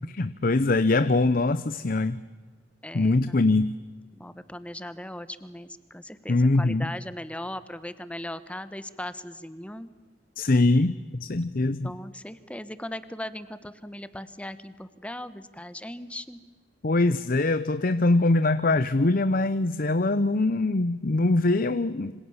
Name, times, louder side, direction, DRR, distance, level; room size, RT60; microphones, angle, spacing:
voice 1, 0.1-2.2 2.9-3.8 6.3-6.9 10.4-11.9 16.8-22.2, left 2 dB, 50° left, 14 dB, 0.7 m, -23 dB
voice 2, 2.8-3.4 4.1-9.9 11.8-16.4, left 1 dB, 5° left, 14 dB, 1.2 m, -38 dB
27.0 x 25.5 x 7.3 m, 1.4 s
head